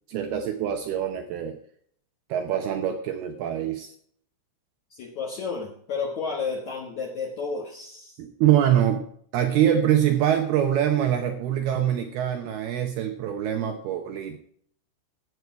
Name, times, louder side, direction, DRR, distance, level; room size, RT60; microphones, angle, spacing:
voice 1, 0.1-1.6 2.3-3.9 8.2-9.0 9.3-14.4, right 10 dB, 85° right, 5 dB, 2.2 m, -24 dB
voice 2, 4.9-8.2, left 4 dB, 80° left, -1 dB, 1.6 m, -32 dB
14.5 x 8.3 x 4.6 m, 0.62 s
omnidirectional pair, 5.7 m